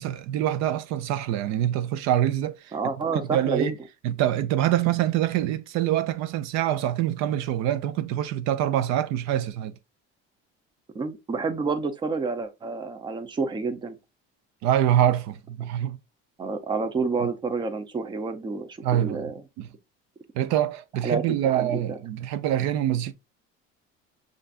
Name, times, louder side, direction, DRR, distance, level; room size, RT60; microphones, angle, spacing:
voice 1, 0.0-2.7 3.3-3.7 4.0-9.7 14.6-16.0 18.8-19.3 19.6-19.7 20.3-23.1, right 12 dB, 65° right, 0.6 m, -25 dB
voice 2, 2.7-3.7 10.9-14.0 16.4-19.4 21.0-22.0, right 4 dB, 15° right, 0.5 m, -29 dB
6.6 x 2.5 x 2.4 m
cardioid pair, 150°, 29 cm